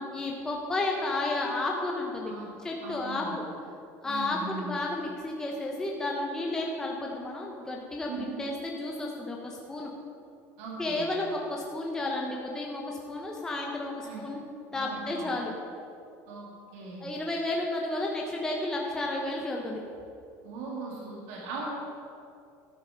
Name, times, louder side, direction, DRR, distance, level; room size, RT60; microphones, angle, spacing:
voice 1, 0.0-2.3 2.6-3.4 4.0-9.9 10.8-14.4 14.7-15.5 17.0-19.8, left 2 dB, 10° left, -1 dB, 0.9 m, -32 dB
voice 2, 2.8-3.4 4.0-4.8 8.1-8.4 10.6-11.1 14.0-14.3 14.7-15.3 16.3-16.5 16.7-17.1 20.4-21.8, right 3 dB, 75° right, -3 dB, 2.7 m, -39 dB
12.5 x 8.7 x 5.3 m, 2.5 s
cardioid pair, 170°, 7 cm